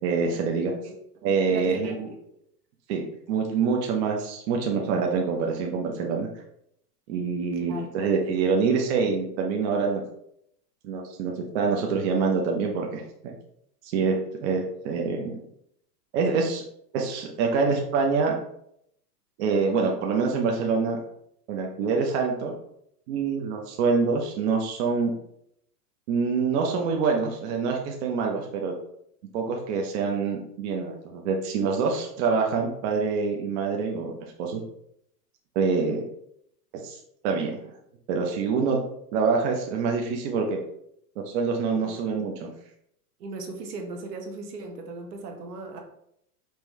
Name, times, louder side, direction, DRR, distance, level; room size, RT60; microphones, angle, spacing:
voice 1, 0.0-0.7 1.2-2.1 2.9-6.3 7.1-10.0 10.8-13.3 13.8-15.3 16.1-16.6 16.9-18.3 19.4-21.0 21.5-22.5 23.1-25.1 26.1-28.7 29.3-34.6 35.5-36.0 36.7-37.0 37.2-37.5 38.1-38.8 39.1-40.6 41.2-42.5, right 5 dB, 45° right, 1 dB, 0.8 m, -26 dB
voice 2, 1.5-2.2 7.7-7.9 41.8-41.9 43.2-45.8, right 3 dB, 75° right, 2 dB, 1.3 m, -37 dB
5.5 x 3.0 x 3.1 m, 0.73 s
hypercardioid pair, 135°, 48 cm